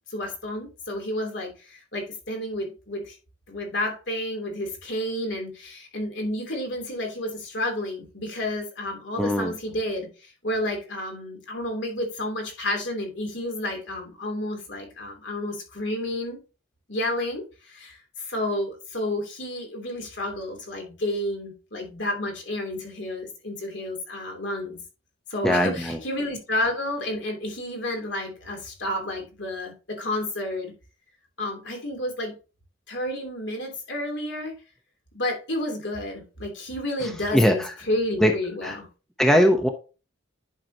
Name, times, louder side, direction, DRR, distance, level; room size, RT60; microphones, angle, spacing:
voice 1, 0.1-3.2 3.5-16.4 16.9-24.8 25.3-30.7 31.4-32.3 32.9-34.5 35.1-38.9, left 1 dB, 65° left, 2 dB, 3.1 m, -31 dB
voice 2, 9.2-9.5 25.4-26.0 37.3-37.5 38.2-38.3 38.6-38.8 39.2-39.7, equal, ahead, 4 dB, 0.8 m, -20 dB
11.0 x 5.7 x 2.8 m, 0.33 s
head